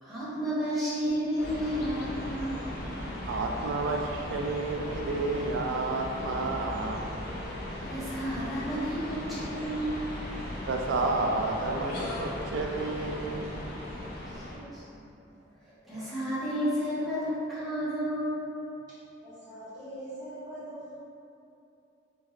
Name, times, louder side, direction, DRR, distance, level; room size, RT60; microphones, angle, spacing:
voice 1, 0.0-2.6 7.8-10.0 14.3-14.4 14.7-15.0 15.6-18.4, equal, ahead, -13 dB, 1.0 m, -31 dB
sound 1, 1.4-14.6, left 1 dB, 50° left, 0.5 m, -37 dB
voice 2, 3.3-7.0 10.7-13.6 13.9-14.0, right 3 dB, 70° right, 2 dB, 0.3 m, -31 dB
voice 3, 19.2-20.9, right 1 dB, 20° right, -13 dB, 1.4 m, -42 dB
3.4 x 3.1 x 2.4 m, 2.8 s
head